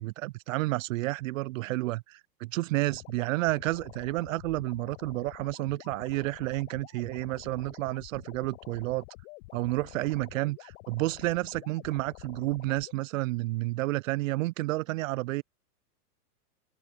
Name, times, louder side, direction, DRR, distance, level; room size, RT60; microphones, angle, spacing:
voice 1, 0.0-9.0 9.5-15.4, right 19 dB, 55° right, 0.5 m, -30 dB
sound 1, 2.9-12.9, left 24 dB, 55° left, 6.5 m, -49 dB
open air
hypercardioid pair, 115°, 47 cm